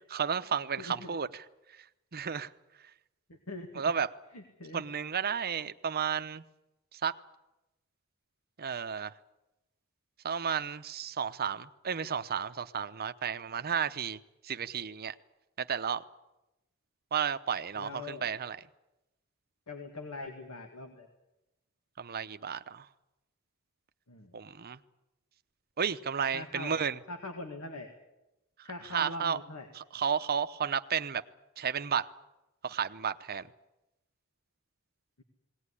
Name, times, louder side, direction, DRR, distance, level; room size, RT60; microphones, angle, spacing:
voice 1, 0.1-1.5 1.7-1.9 2.1-2.5 3.8-4.1 4.7-6.4 6.9-7.2 8.6-9.1 10.2-14.2 14.4-15.1 15.6-16.0 17.1-18.6 22.0-22.9 24.3-24.8 25.8-27.0 28.6-29.4 29.7-31.2 31.6-32.1 32.6-33.5, right 7 dB, 45° right, 0.8 m, -32 dB
voice 2, 0.8-1.2 3.3-3.8 4.3-4.8 17.8-18.3 19.7-21.1 24.1-24.4 26.3-27.9 28.6-29.7, left 2 dB, 80° left, 2.0 m, -42 dB
19.5 x 18.0 x 9.9 m
head